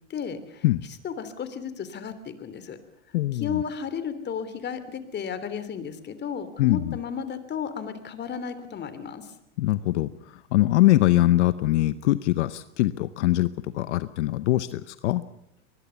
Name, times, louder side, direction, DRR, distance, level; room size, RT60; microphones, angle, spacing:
voice 1, 0.1-0.6 1.0-2.8 3.3-9.2, left 7 dB, 30° left, 12 dB, 3.0 m, -33 dB
voice 2, 3.1-3.6 6.6-7.0 9.6-10.1 10.5-15.2, left 16 dB, 75° left, 15 dB, 0.9 m, -22 dB
23.5 x 20.5 x 7.0 m, 0.76 s
hypercardioid pair, 110°, 35 cm